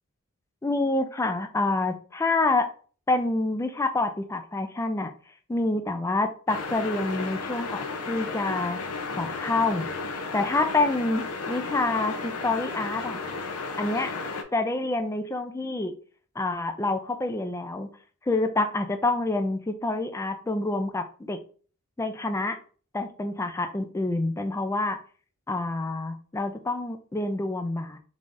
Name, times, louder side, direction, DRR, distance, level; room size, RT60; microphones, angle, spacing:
voice 1, 0.6-2.7 3.1-5.1 5.5-8.8 9.1-9.9 10.3-13.2 13.8-14.1 14.5-15.9 16.4-17.9 18.3-21.4 22.0-22.6 22.9-25.0 25.5-28.0, left 2 dB, 15° left, 7 dB, 0.3 m, -27 dB
sound 1, 6.5-14.4, left 3 dB, 80° left, 0.6 m, -33 dB
3.8 x 3.3 x 2.4 m, 0.41 s
head